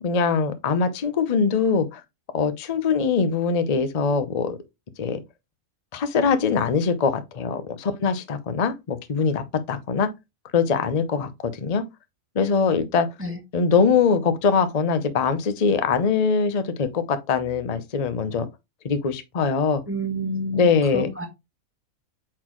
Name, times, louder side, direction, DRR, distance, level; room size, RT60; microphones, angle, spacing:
voice 1, 0.0-2.0 2.3-4.6 5.0-5.2 5.9-10.1 10.5-11.8 12.3-13.1 13.5-18.5 18.8-19.8 20.5-21.1, left 5 dB, 35° left, 0.7 m, -22 dB
voice 2, 19.9-21.3, right 1 dB, 10° right, 1.3 m, -29 dB
8.7 x 4.0 x 3.1 m
omnidirectional pair, 1.4 m